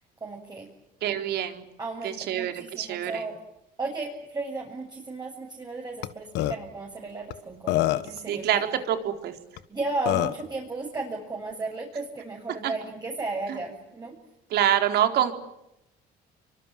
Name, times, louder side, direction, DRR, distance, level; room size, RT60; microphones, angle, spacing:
voice 1, 0.2-0.7 1.8-3.4 3.8-8.6 9.7-14.1, right 3 dB, 25° right, 0 dB, 7.5 m, -34 dB
voice 2, 1.0-1.7 2.0-3.3 8.3-9.3 12.6-12.7 13.5-13.6 14.5-15.3, right 10 dB, 75° right, 6 dB, 4.2 m, -26 dB
Burping eructation, 6.0-6.1 6.4-6.6 7.3-7.4 7.7-8.2 9.6-9.7 10.1-10.4, left 15 dB, 85° left, 1.5 m, -24 dB
29.5 x 25.0 x 7.6 m, 0.87 s
cardioid pair, 110°, 17 cm